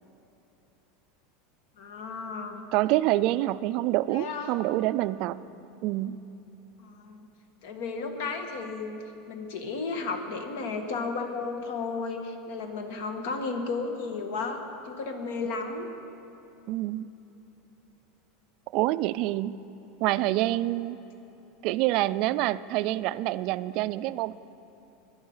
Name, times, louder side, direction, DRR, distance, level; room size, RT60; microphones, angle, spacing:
voice 1, 1.8-2.6 4.1-4.5 6.8-7.3 7.6-15.9, left 4 dB, 70° left, 5 dB, 1.6 m, -34 dB
voice 2, 2.7-5.4 5.8-6.2 16.7-17.1 18.7-19.6 20.0-21.0 21.6-24.4, right 16 dB, 45° right, 15 dB, 0.3 m, -26 dB
17.0 x 11.0 x 5.6 m, 3.0 s
supercardioid pair, 165°, 0 cm